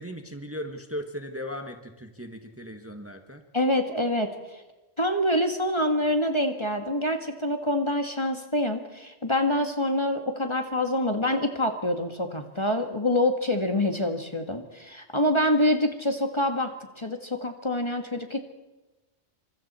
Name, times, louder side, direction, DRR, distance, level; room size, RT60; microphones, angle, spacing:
voice 1, 0.0-3.4, equal, 10° right, 5 dB, 1.5 m, -37 dB
voice 2, 3.5-4.6 5.0-18.4, left 1 dB, 25° left, 5 dB, 1.8 m, -26 dB
28.0 x 25.5 x 4.3 m, 1.1 s
omnidirectional pair, 1.2 m